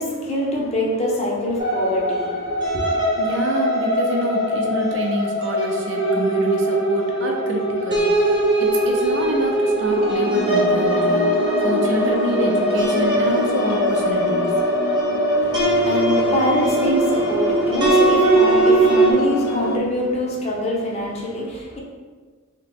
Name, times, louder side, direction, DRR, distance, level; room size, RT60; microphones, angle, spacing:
voice 1, 0.0-3.0 15.3-21.8, left 1 dB, 30° left, -2 dB, 0.6 m, -25 dB
sound 1, 1.6-19.1, right 1 dB, 20° right, 0.7 m, -20 dB
voice 2, 3.1-11.4 11.6-14.5, right 2 dB, 65° right, 1 dB, 0.5 m, -27 dB
sound 2, 9.9-19.8, left 3 dB, 85° left, 0.3 m, -27 dB
2.9 x 2.9 x 3.4 m, 1.5 s
head